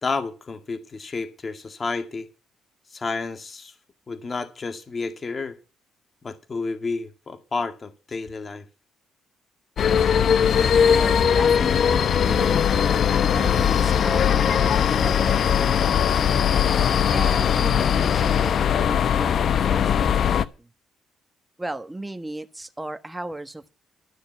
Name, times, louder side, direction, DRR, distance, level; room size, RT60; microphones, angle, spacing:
voice 1, 0.0-2.3 2.9-3.7 4.1-5.6 6.2-8.7, left 4 dB, 35° left, 2.0 m, -30 dB
sound 1, 9.8-20.5, left 8 dB, 60° left, 0.9 m, -20 dB
voice 2, 11.0-12.7 13.3-16.3 17.1-20.7 21.6-23.7, right 2 dB, 10° right, 1.4 m, -36 dB
13.5 x 6.7 x 9.3 m
cardioid pair, 90°, 0 cm